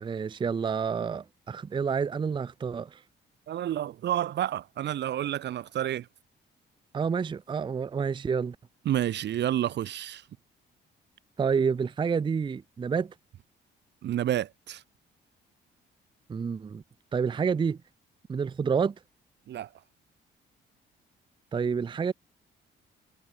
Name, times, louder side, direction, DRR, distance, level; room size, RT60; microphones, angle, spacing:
voice 1, 0.0-3.0 6.9-8.6 11.4-13.1 16.3-16.8 17.1-17.8 18.3-18.9 21.5-22.1, right 6 dB, 25° right, 0.4 m, -28 dB
voice 2, 3.5-6.1 8.9-10.2 14.0-14.8 19.5-19.7, right 11 dB, 60° right, 0.7 m, -29 dB
cardioid pair, 90°, 20 cm